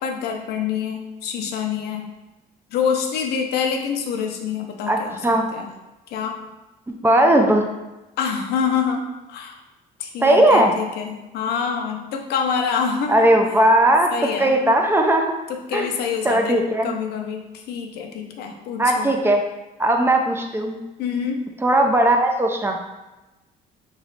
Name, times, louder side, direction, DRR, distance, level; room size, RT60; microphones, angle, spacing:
voice 1, 0.0-2.0 2.7-5.2 5.5-5.7 6.1-6.4 8.2-9.6 10.0-13.3 14.1-14.6 15.5-19.1 21.0-21.4, left 6 dB, 75° left, 3 dB, 0.6 m, -26 dB
voice 2, 4.9-5.5 6.9-7.7 10.2-10.8 13.1-14.1 14.4-15.3 15.7-15.9 16.2-16.9 18.8-19.4 19.8-20.8 21.6-22.8, right 1 dB, 15° right, 3 dB, 0.4 m, -18 dB
3.2 x 3.1 x 4.0 m, 1.0 s
cardioid pair, 110°, 17 cm